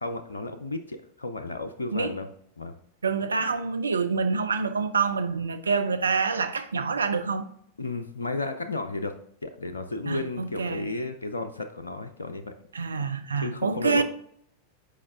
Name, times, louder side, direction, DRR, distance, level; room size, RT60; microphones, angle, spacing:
voice 1, 0.0-2.3 2.6-2.7 7.8-9.1 9.4-12.5 13.4-14.0, left 2 dB, 75° left, 0.5 m, -33 dB
voice 2, 3.0-7.5 10.1-10.8 12.7-14.0, right 5 dB, 75° right, 0.5 m, -27 dB
8.4 x 4.9 x 3.5 m
figure-of-eight pair, 90°, 0 cm